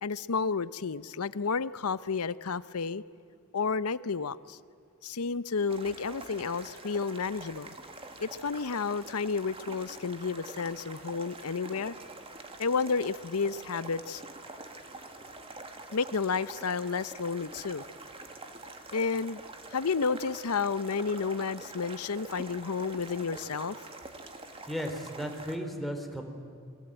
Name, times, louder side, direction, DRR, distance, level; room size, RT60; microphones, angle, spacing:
voice 1, 0.0-3.0 3.5-4.6 5.0-7.7 8.2-12.0 12.6-14.2 15.9-17.9 18.9-19.4 19.7-23.8, left 5 dB, 85° left, 16 dB, 0.7 m, -31 dB
sound 1, 5.7-25.6, right 2 dB, 25° right, 2.0 m, -46 dB
voice 2, 24.7-26.2, equal, ahead, 3 dB, 3.4 m, -35 dB
29.0 x 22.0 x 9.0 m, 2.4 s
head